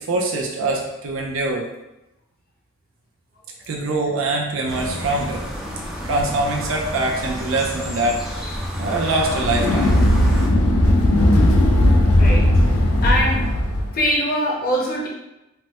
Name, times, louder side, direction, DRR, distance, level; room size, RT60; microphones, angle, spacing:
voice 1, 0.0-1.7 3.7-5.4 6.0-8.5 8.8-9.9, right 2 dB, 65° right, -1 dB, 0.4 m, -23 dB
sound 1, 4.7-10.5, equal, ahead, 0.4 m, -30 dB
sound 2, 9.1-14.0, left 1 dB, 90° left, 0.4 m, -16 dB
voice 2, 12.1-13.5 13.9-15.1, equal, 45° left, -3 dB, 0.7 m, -23 dB
3.2 x 2.0 x 2.9 m, 0.94 s
head